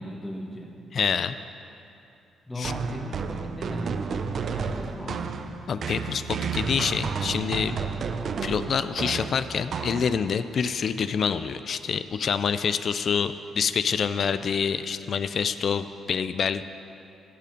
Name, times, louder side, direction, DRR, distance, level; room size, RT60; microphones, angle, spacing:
voice 1, 0.0-0.8 2.5-5.3, equal, 15° left, 1 dB, 1.5 m, -37 dB
voice 2, 0.9-1.4 2.6-2.7 5.7-7.8 8.4-16.6, left 6 dB, 55° left, 12 dB, 0.3 m, -26 dB
sound 1, 2.6-10.5, right 5 dB, 55° right, 0.5 m, -32 dB
13.5 x 6.8 x 5.1 m, 2.7 s
cardioid pair, 90°, 0 cm